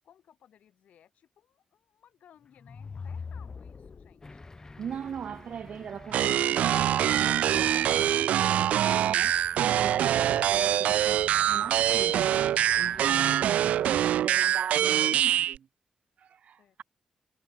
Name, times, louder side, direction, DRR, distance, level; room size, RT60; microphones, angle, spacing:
voice 1, 0.0-4.4 16.6-16.8, left 9 dB, 80° left, 7.2 m, -60 dB
sound 1, 2.4-4.5, left 5 dB, 50° left, 3.9 m, -41 dB
sound 2, 4.2-13.9, left 3 dB, 30° left, 1.5 m, -48 dB
voice 2, 4.8-15.7 16.2-16.8, right 8 dB, 70° right, 2.0 m, -41 dB
sound 3, 6.1-15.6, right 11 dB, 90° right, 0.5 m, -24 dB
cardioid pair, 65°, 2 cm